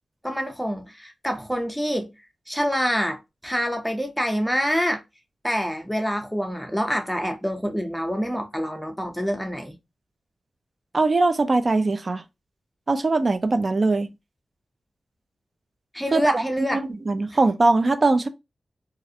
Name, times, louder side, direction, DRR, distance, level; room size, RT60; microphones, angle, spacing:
voice 1, 0.2-2.1 2.5-5.0 5.4-9.8 15.9-16.8, equal, ahead, 0.7 m, -26 dB
voice 2, 10.9-12.2 12.9-14.1 16.1-18.3, right 3 dB, 45° right, 0.4 m, -21 dB
2.4 x 2.0 x 2.6 m
cardioid pair, 55°, 0 cm